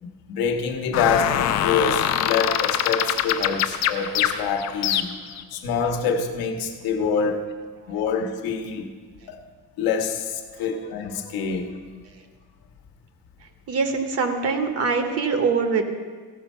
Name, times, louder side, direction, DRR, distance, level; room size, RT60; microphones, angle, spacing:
voice 1, 0.0-5.1 5.5-7.5 7.9-8.9 9.3-9.4 9.8-11.7, left 5 dB, 70° left, 4 dB, 1.3 m, -26 dB
sound 1, 0.9-5.4, left 10 dB, 45° left, 0.5 m, -24 dB
voice 2, 13.7-15.8, right 5 dB, 40° right, 7 dB, 0.9 m, -23 dB
15.5 x 6.3 x 5.4 m, 1.5 s
cardioid pair, 180°, 38 cm